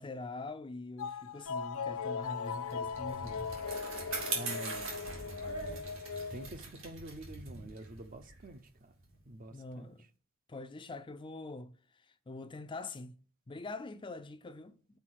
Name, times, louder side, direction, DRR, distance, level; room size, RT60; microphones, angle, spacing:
voice 1, 0.0-3.5 9.5-10.1 10.5-13.2 13.5-15.0, left 2 dB, 25° left, 0.4 m, -44 dB
sound 1, 1.0-6.5, left 5 dB, 90° left, 0.5 m, -39 dB
Bicycle, 2.5-9.2, right 3 dB, 80° right, 2.7 m, -42 dB
voice 2, 4.3-5.6 6.3-8.9 9.3-9.9, right 1 dB, 45° right, 0.6 m, -47 dB
5.9 x 5.1 x 6.3 m
head